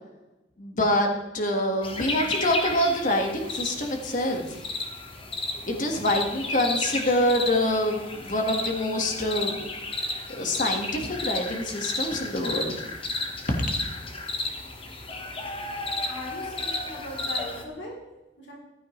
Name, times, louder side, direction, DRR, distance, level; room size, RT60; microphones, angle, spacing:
voice 1, 0.6-4.4 5.7-9.6 10.4-12.8, left 1 dB, 45° left, 3 dB, 1.6 m, -26 dB
sound 1, 1.8-17.6, left 2 dB, 30° left, 1.2 m, -33 dB
voice 2, 16.1-17.9 18.4-18.5, left 1 dB, 75° left, -2 dB, 3.4 m, -39 dB
15.0 x 12.0 x 3.2 m, 1.0 s
head